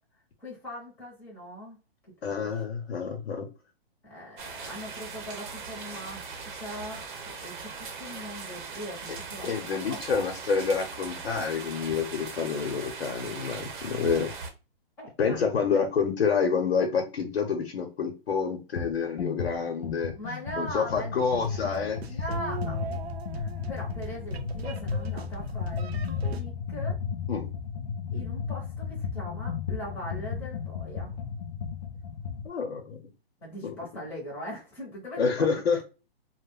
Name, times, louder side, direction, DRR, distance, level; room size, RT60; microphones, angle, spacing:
voice 1, 0.4-1.8 2.2-2.5 4.0-9.5 9.9-10.0 15.0-15.7 20.1-21.2 22.1-23.0 23.3-27.0 28.1-31.1 33.4-35.5 35.7-35.8, equal, 5° left, -4 dB, 0.6 m, -40 dB
voice 2, 2.2-3.5 9.1-9.2 9.4-14.3 15.2-20.1 20.6-22.2 27.3-27.5 32.4-33.0 33.6-33.7 35.2-35.8, left 5 dB, 85° left, 4 dB, 0.8 m, -28 dB
sound 1, 4.4-14.5, right 5 dB, 50° right, 0.7 m, -39 dB
sound 2, 18.8-18.9 19.2-32.5, left 6 dB, 45° left, 0.4 m, -34 dB
sound 3, 21.4-26.4, right 5 dB, 85° right, 0.6 m, -40 dB
2.3 x 2.1 x 3.3 m, 0.31 s
hypercardioid pair, 155°, 31 cm